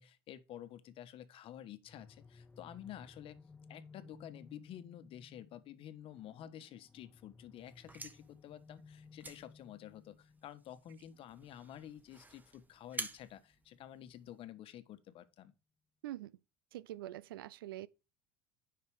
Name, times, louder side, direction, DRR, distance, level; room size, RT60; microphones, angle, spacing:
voice 1, 0.0-3.4 3.7-15.5, left 11 dB, 50° left, 1.3 m, -51 dB
sound 1, 1.8-14.6, left 4 dB, 15° left, 0.5 m, -60 dB
sound 2, 7.6-14.5, right 2 dB, 15° right, 1.4 m, -50 dB
voice 2, 16.7-17.9, right 14 dB, 85° right, 0.5 m, -44 dB
9.8 x 5.9 x 4.9 m
hypercardioid pair, 80°, 12 cm